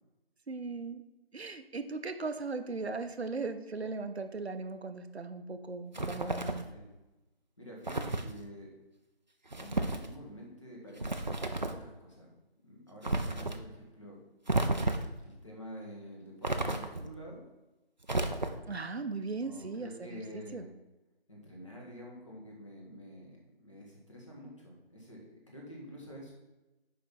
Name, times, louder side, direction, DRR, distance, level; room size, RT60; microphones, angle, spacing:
voice 1, 0.5-1.0 1.3-6.7 18.7-20.6, right 3 dB, 90° right, 8 dB, 0.7 m, -38 dB
sound 1, 5.9-6.7 7.9-8.3 9.5-10.1 11.0-11.8 13.0-13.6 14.5-15.2 16.4-17.1 18.0-18.8, right 2 dB, 45° right, 0.5 m, -32 dB
voice 2, 7.6-8.7 9.5-12.3 12.6-14.2 15.2-17.4 19.3-20.7 21.3-26.3, equal, 30° left, -3 dB, 1.3 m, -48 dB
5.5 x 5.2 x 4.2 m, 1.0 s
figure-of-eight pair, 170°, 31 cm